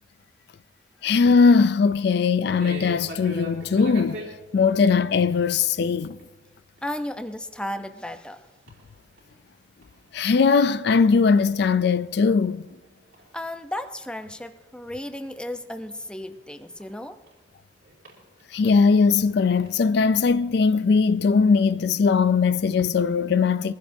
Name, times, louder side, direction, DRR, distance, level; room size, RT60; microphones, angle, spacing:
voice 1, 1.0-4.2 4.5-6.2 10.1-12.7 18.5-23.7, left 5 dB, 60° left, 0.4 m, -20 dB
sound 1, 2.6-4.3 5.4-5.8 6.0-6.3 6.8-6.9 7.3-7.4 7.7-8.4 8.7-10.0 10.3-13.6 14.0-17.3 17.8-19.8, right 1 dB, 85° right, 3.7 m, -43 dB
voice 2, 6.8-8.4 13.3-17.2, left 1 dB, 5° left, 0.7 m, -34 dB
22.5 x 15.5 x 2.7 m
head